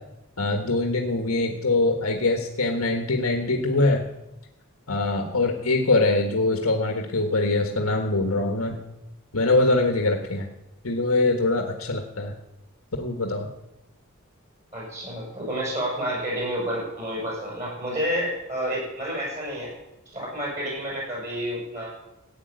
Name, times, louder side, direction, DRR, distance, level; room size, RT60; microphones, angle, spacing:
voice 1, 0.4-4.0 4.9-8.8 9.3-10.5 10.8-12.3 13.0-13.5, left 2 dB, 85° left, 3 dB, 1.6 m, -23 dB
voice 2, 14.7-19.7 20.1-21.9, equal, 35° right, -4 dB, 7.2 m, -29 dB
15.0 x 8.9 x 8.1 m, 0.92 s
head